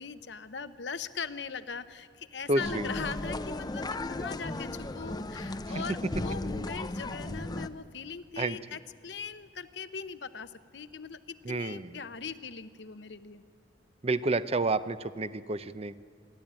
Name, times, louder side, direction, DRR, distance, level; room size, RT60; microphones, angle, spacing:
voice 1, 0.0-13.4, left 5 dB, 70° left, 12 dB, 0.9 m, -40 dB
voice 2, 2.5-2.9 5.7-5.8 8.4-8.6 11.4-12.0 14.0-16.0, right 2 dB, 35° right, 14 dB, 0.6 m, -30 dB
sound 1, 2.6-7.7, left 2 dB, 25° left, 0.7 m, -35 dB
29.5 x 12.0 x 8.8 m, 2.4 s
head